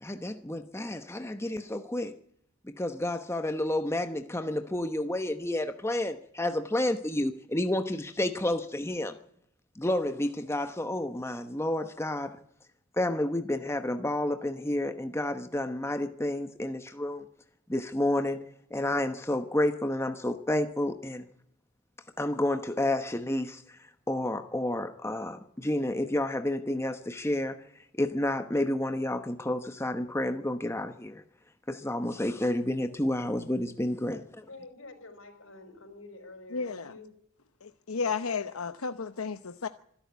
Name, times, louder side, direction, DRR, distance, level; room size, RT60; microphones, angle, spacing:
voice 1, 0.0-2.1 2.8-9.1 9.8-12.4 13.0-17.3 17.7-18.4 18.7-21.3 22.2-23.8 24.1-27.6 27.9-31.2 31.7-34.2, left 1 dB, 10° left, 1.0 m, -30 dB
voice 2, 33.9-37.1, left 2 dB, 65° left, 5.0 m, -49 dB
voice 3, 36.5-36.9 37.6-39.7, left 5 dB, 85° left, 0.8 m, -33 dB
25.5 x 11.5 x 9.5 m
head